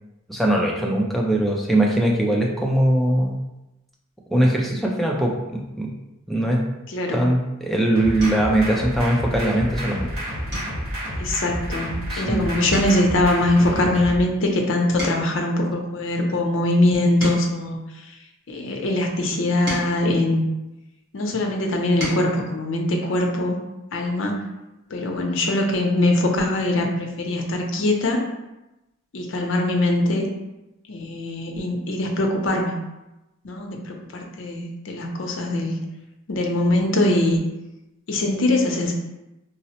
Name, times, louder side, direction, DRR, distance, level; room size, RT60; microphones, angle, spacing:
voice 1, 0.3-3.4 4.3-5.9 6.3-6.6 7.1-10.1 12.1-12.5, right 1 dB, ahead, -2 dB, 0.3 m, -21 dB
voice 2, 6.9-7.2 11.2-17.8 18.5-20.4 21.1-23.6 23.9-24.3 24.9-28.2 29.1-30.3 30.9-32.7 33.4-35.8 36.3-37.4 38.1-38.9, left 1 dB, 60° left, 1 dB, 0.5 m, -22 dB
sound 1, 7.3-7.6 8.2-8.6 9.1-9.4 9.7-9.9 10.5-12.3 12.6-15.5 16.1-18.6 19.2-21.1 21.6-22.4 23.7-23.8 24.1-24.3, equal, 50° right, 1.3 m, -36 dB
sound 2, 8.0-14.2, equal, 70° right, 0.9 m, -30 dB
3.8 x 2.0 x 2.8 m, 0.97 s
head